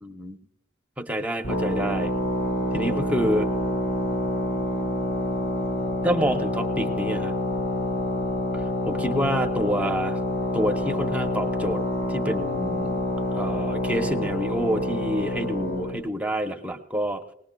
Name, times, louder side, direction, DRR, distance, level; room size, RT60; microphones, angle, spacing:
voice 1, 0.0-0.4 1.0-2.1 2.7-3.5 6.0-7.4 8.9-10.2 10.5-11.8 12.1-13.0 13.3-17.2, equal, 5° right, 4 dB, 0.7 m, -27 dB
sound 1, 1.4-16.0, left 1 dB, 65° left, 3.7 m, -27 dB
20.5 x 19.0 x 2.2 m, 0.82 s
head